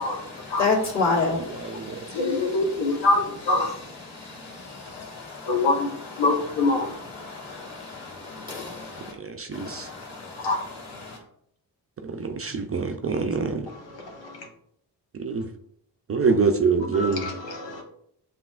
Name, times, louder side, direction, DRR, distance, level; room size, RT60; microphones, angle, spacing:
voice 1, 0.0-3.1 3.6-9.1 9.5-11.2, left 4 dB, 40° left, 1.8 m, -32 dB
voice 2, 1.3-2.0 9.2-9.9 12.0-13.7 15.2-15.4 16.1-17.2, right 4 dB, 35° right, 0.4 m, -25 dB
voice 3, 2.1-3.7 5.5-5.9 6.2-6.9 10.4-10.6 16.9-17.8, left 2 dB, 85° left, 1.2 m, -24 dB
7.7 x 2.8 x 2.4 m
cardioid pair, 85°, 43 cm